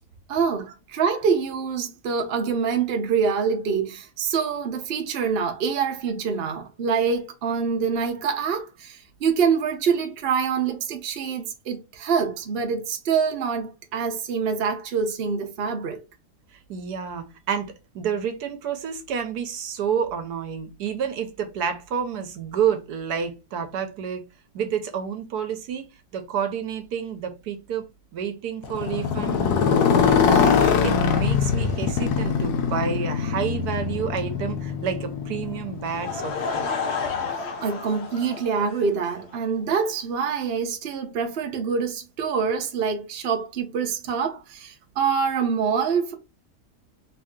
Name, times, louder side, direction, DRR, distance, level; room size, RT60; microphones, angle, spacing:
voice 1, 0.3-16.0 37.6-46.1, right 6 dB, 50° right, 0.8 m, -25 dB
voice 2, 16.5-24.2 24.5-27.9 28.1-29.4 29.7-37.0, right 7 dB, 75° right, 1.2 m, -29 dB
Motorcycle, 28.6-36.7, left 6 dB, 75° left, 1.2 m, -22 dB
Laughter / Crowd, 35.8-39.3, left 5 dB, 55° left, 0.8 m, -31 dB
3.2 x 2.7 x 3.5 m
omnidirectional pair, 1.7 m